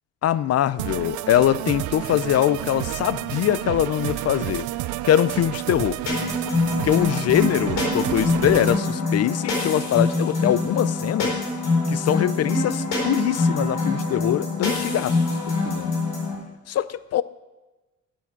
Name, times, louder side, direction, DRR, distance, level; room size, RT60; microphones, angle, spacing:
voice 1, 0.2-4.7 5.0-6.0 6.8-11.4 11.9-15.9 16.7-17.2, left 11 dB, 55° left, 0.5 m, -23 dB
sound 1, 0.8-8.8, right 16 dB, 80° right, 0.5 m, -30 dB
sound 2, 6.1-16.3, left 3 dB, 80° left, 4.4 m, -24 dB
10.5 x 7.0 x 7.3 m
cardioid pair, 90°, 30 cm